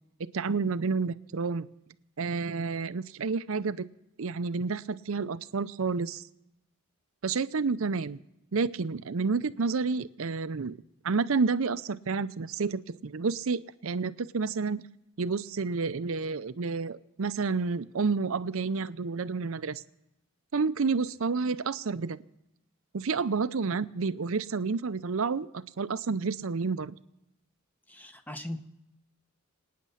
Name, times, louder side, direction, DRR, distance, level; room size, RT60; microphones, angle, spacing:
voice 1, 0.2-1.7 2.2-3.9 4.2-6.2 7.2-8.2 8.5-10.8 11.0-14.8 15.2-19.8 20.5-22.2 22.9-26.9, right 4 dB, 65° right, 15 dB, 0.6 m, -30 dB
voice 2, 27.9-28.6, left 1 dB, 10° left, 8 dB, 0.9 m, -39 dB
26.0 x 9.4 x 5.7 m, 0.88 s
head